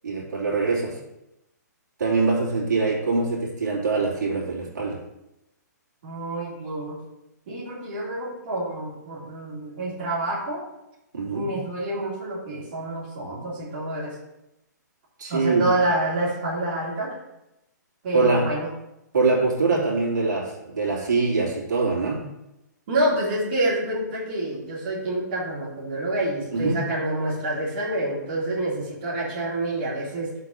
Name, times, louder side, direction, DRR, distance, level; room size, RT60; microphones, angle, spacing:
voice 1, 0.0-0.9 2.0-5.0 11.1-11.5 15.2-15.7 18.1-18.5 19.1-22.2 26.5-26.8, right 3 dB, 75° right, -4 dB, 2.7 m, -23 dB
voice 2, 6.0-7.0 7.5-10.6 11.3-14.2 15.3-17.1 18.0-18.7 22.9-30.3, right 1 dB, 30° right, -7 dB, 2.4 m, -27 dB
6.1 x 4.6 x 6.4 m, 0.90 s
hypercardioid pair, 180°, 10 cm